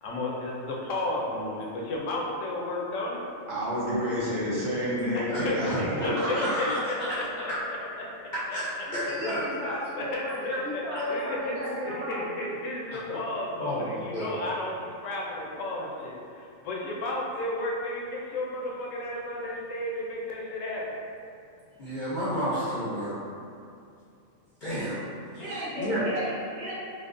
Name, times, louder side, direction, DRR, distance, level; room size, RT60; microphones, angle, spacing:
voice 1, 0.0-3.2 5.1-7.2 8.5-8.6 9.9-10.8 11.1-11.6 11.8-21.0 25.3-25.9, left 1 dB, 75° left, -2 dB, 0.9 m, -33 dB
voice 2, 3.5-6.7, equal, 80° right, -7 dB, 1.3 m, -29 dB
voice 3, 5.3-7.2 8.5-9.8 10.9-11.0 13.1-13.2 13.6-14.4 21.8-23.1 24.6-25.0 25.3-26.0, equal, 50° left, -9 dB, 0.6 m, -31 dB
voice 4, 8.9-12.3 25.4-26.7, equal, 60° right, -6 dB, 0.9 m, -35 dB
4.9 x 2.0 x 2.5 m, 2.4 s
omnidirectional pair, 1.4 m